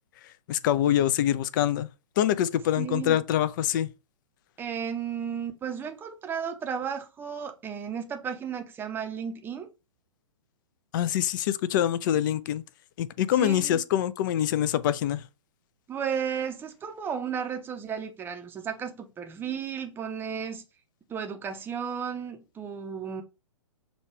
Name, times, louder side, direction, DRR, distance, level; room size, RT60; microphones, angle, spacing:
voice 1, 0.5-1.9 2.2-3.9 10.9-12.6 13.0-15.2, left 11 dB, 35° left, 0.4 m, -25 dB
voice 2, 2.8-3.2 4.6-9.7 13.3-13.8 15.9-20.6 21.1-23.2, right 7 dB, 10° right, 0.6 m, -34 dB
6.0 x 2.3 x 3.2 m
figure-of-eight pair, 120°, 17 cm